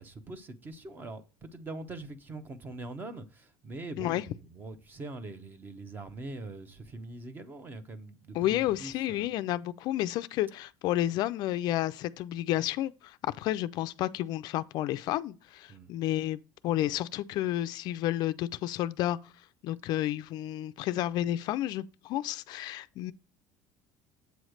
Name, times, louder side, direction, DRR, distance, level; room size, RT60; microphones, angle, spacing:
voice 1, 0.0-9.3 15.7-15.9, right 2 dB, 20° right, 0.8 m, -43 dB
voice 2, 8.3-19.3 19.6-23.1, left 14 dB, 55° left, 0.3 m, -31 dB
8.0 x 3.1 x 6.3 m
cardioid pair, 155°, 9 cm